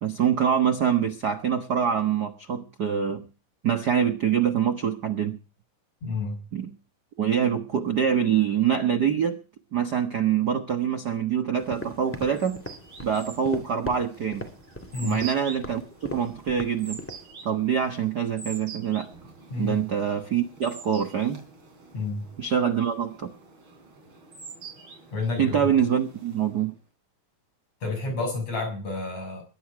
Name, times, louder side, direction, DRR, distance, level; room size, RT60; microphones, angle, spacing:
voice 1, 0.0-3.3 3.6-5.4 6.5-6.7 7.2-9.4 9.7-12.6 13.0-14.5 15.0-17.0 17.4-19.1 19.6-21.4 22.4-23.3 25.4-26.7, right 8 dB, 80° right, 0.9 m, -25 dB
voice 2, 6.0-6.4 14.9-15.2 19.5-19.8 21.9-22.3 25.1-25.6 27.8-29.4, left 3 dB, 50° left, 7.5 m, -30 dB
sound 1, 11.6-17.3, left 1 dB, 5° left, 1.0 m, -39 dB
sound 2, 11.8-26.8, right 4 dB, 35° right, 4.3 m, -46 dB
21.5 x 10.5 x 4.7 m
omnidirectional pair, 3.9 m